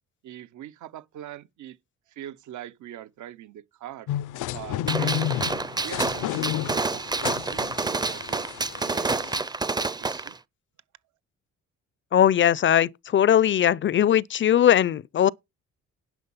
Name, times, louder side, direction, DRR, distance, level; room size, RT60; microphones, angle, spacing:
voice 1, 0.2-1.8 2.1-4.1 4.5-5.4 5.8-10.4, right 12 dB, 75° right, 1.0 m, -43 dB
sound 1, 4.1-9.4, left 13 dB, 85° left, 0.6 m, -31 dB
Gunshot gunfire, 4.9-10.3, right 3 dB, 15° right, 0.5 m, -28 dB
voice 2, 12.1-15.3, left 10 dB, 40° left, 0.5 m, -20 dB
10.5 x 6.3 x 5.6 m
cardioid pair, 90°, 30 cm